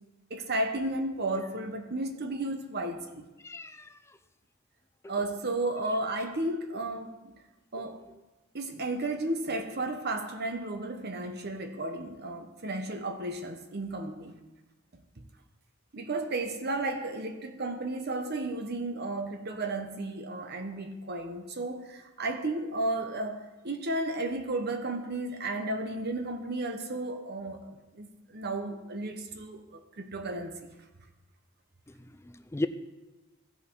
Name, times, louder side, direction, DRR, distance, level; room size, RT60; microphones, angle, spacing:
voice 1, 0.3-3.2 5.1-7.2 7.7-8.0 8.5-14.4 15.2-15.3 15.9-30.6, right 2 dB, 55° right, 6 dB, 1.0 m, -33 dB
voice 2, 3.4-3.9 5.0-5.1 31.9-32.7, left 2 dB, 15° left, 11 dB, 0.5 m, -35 dB
16.0 x 5.5 x 4.6 m, 1.1 s
head